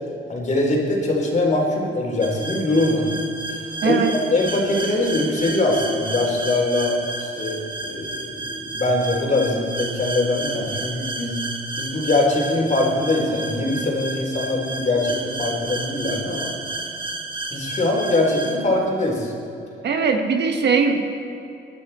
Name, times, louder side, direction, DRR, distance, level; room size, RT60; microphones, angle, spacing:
voice 1, 0.3-3.1 3.5-11.4 11.8-16.5 17.5-19.3, left 2 dB, 35° left, -1 dB, 3.8 m, -22 dB
sound 1, 2.2-18.6, right 2 dB, 25° right, 1.8 m, -32 dB
voice 2, 19.8-21.2, right 5 dB, 60° right, 5 dB, 1.4 m, -20 dB
20.5 x 11.0 x 4.3 m, 2.8 s
cardioid pair, 90°, 20 cm